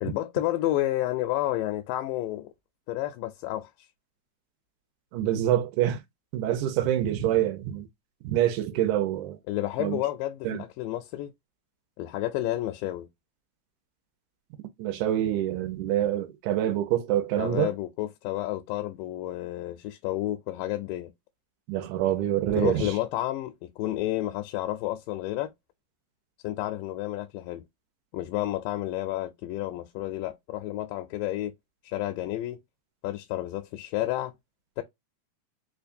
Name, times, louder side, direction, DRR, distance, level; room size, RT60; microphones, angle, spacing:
voice 1, 0.0-2.5 2.9-3.7 9.5-11.3 12.0-13.1 17.4-21.1 22.6-25.5 26.4-27.6 28.1-31.5 31.8-32.6 33.0-34.3 34.8-34.9, left 15 dB, 90° left, 2.2 m, -30 dB
voice 2, 5.1-6.0 6.3-7.9 8.2-9.4 9.8-10.0 10.5-10.6 14.8-17.7 21.7-22.9, right 12 dB, 80° right, 2.1 m, -26 dB
5.1 x 2.3 x 2.5 m
omnidirectional pair, 3.7 m